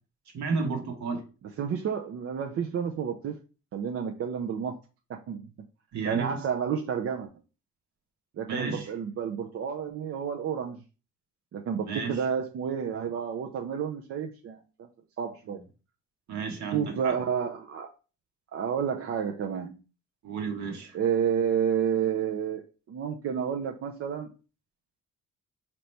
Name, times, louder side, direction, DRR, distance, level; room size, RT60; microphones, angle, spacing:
voice 1, 0.3-1.2 5.9-6.4 8.5-8.9 11.8-12.2 16.3-17.1 20.2-21.0, right 4 dB, 65° right, 1.2 m, -32 dB
voice 2, 1.6-3.4 3.7-4.8 5.1-5.4 6.0-7.3 8.4-10.8 11.5-14.9 15.2-15.6 16.7-17.9 18.5-19.8 20.9-24.3, right 7 dB, 50° right, 0.5 m, -30 dB
4.1 x 2.9 x 3.2 m
cardioid pair, 90°, 30 cm